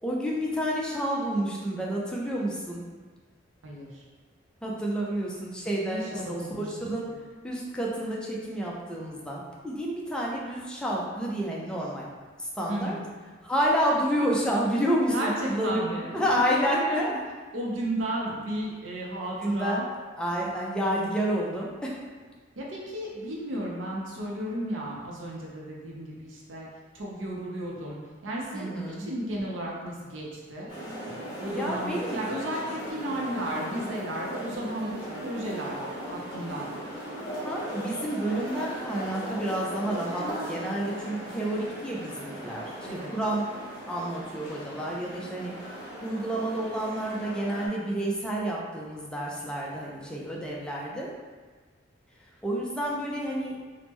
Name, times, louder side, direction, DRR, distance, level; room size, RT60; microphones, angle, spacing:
voice 1, 0.0-2.8 4.6-7.1 7.4-12.1 12.4-13.0 13.4-17.2 19.2-19.8 20.2-22.0 28.5-29.1 31.5-32.2 37.4-42.7 43.1-43.5 43.9-45.5 46.0-51.1 52.4-53.6, equal, 5° left, -4 dB, 0.4 m, -29 dB
voice 2, 3.6-4.0 5.9-7.1 12.7-13.1 15.1-17.0 17.5-19.8 22.6-26.7 26.9-30.7 31.4-35.8 36.1-36.7 42.8-43.1, right 1 dB, 80° right, -3 dB, 0.5 m, -34 dB
sound 1, 30.7-47.7, equal, 25° left, 1.4 m, -38 dB
3.4 x 2.0 x 3.0 m, 1.4 s
head